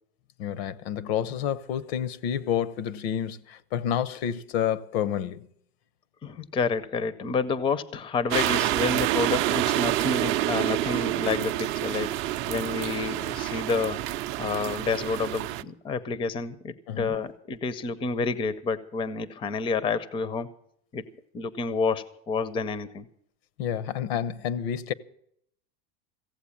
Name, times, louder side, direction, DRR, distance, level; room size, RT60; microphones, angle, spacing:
voice 1, 0.4-5.5 16.9-17.2 23.6-24.9, left 9 dB, 75° left, 0.8 m, -29 dB
voice 2, 6.2-12.1 12.5-14.0 14.4-20.5 20.9-21.0 21.3-23.1, left 4 dB, 15° left, 0.5 m, -29 dB
sound 1, 8.3-15.6, right 15 dB, 40° right, 0.5 m, -27 dB
16.0 x 8.0 x 8.4 m
supercardioid pair, 150°, 31 cm